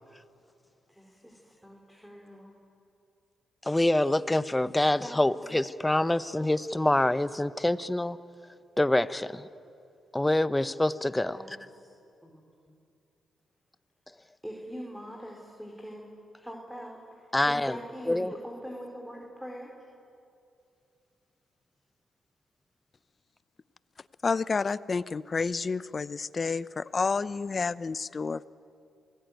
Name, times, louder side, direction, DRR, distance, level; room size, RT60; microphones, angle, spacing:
voice 1, 0.9-2.5 5.0-5.2 11.3-11.9 12.2-12.7 14.4-16.1 16.4-19.7, equal, 5° right, 0 dB, 4.5 m, -43 dB
voice 2, 3.6-8.2 8.8-9.5 10.1-11.6 17.3-17.8 18.1-18.3, left 1 dB, 15° left, 14 dB, 0.9 m, -26 dB
voice 3, 24.2-28.4, left 4 dB, 40° left, 17 dB, 0.7 m, -30 dB
27.0 x 18.5 x 9.3 m, 2.6 s
supercardioid pair, 55°, 0 cm